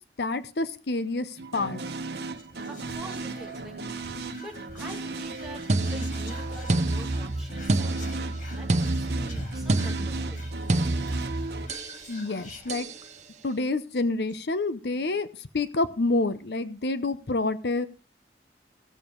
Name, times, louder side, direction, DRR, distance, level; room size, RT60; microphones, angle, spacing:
voice 1, 0.2-1.8 12.1-12.9 13.4-17.9, left 2 dB, 70° left, 13 dB, 0.7 m, -28 dB
sound 1, 1.4-11.7, right 3 dB, 70° right, 1.0 m, -36 dB
Whispering, 2.3-13.3 13.6-13.7 13.9-14.4, left 2 dB, 45° left, 1.9 m, -47 dB
voice 2, 2.7-10.4, equal, 5° right, -1 dB, 2.2 m, -45 dB
sound 2, 5.7-12.0 12.7-13.0, right 2 dB, 40° right, 0.7 m, -28 dB
16.0 x 7.1 x 4.6 m, 0.35 s
head